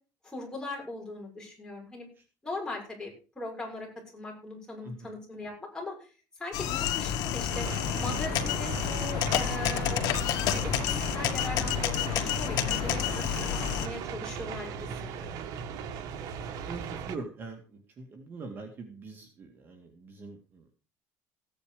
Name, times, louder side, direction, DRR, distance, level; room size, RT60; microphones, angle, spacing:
voice 1, 0.2-2.1 2.4-5.9 6.4-7.7 8.0-10.2 10.5-14.9 15.2-15.3, left 2 dB, 10° left, -1 dB, 6.5 m, -39 dB
voice 2, 4.8-5.2 16.7-20.7, right 3 dB, 30° right, 4 dB, 2.3 m, -43 dB
sound 1, 6.5-13.9, left 10 dB, 65° left, 1.9 m, -29 dB
sound 2, 7.5-17.2, right 6 dB, 60° right, 1.6 m, -38 dB
16.0 x 9.7 x 5.1 m, 0.35 s
cardioid pair, 160°, 7 cm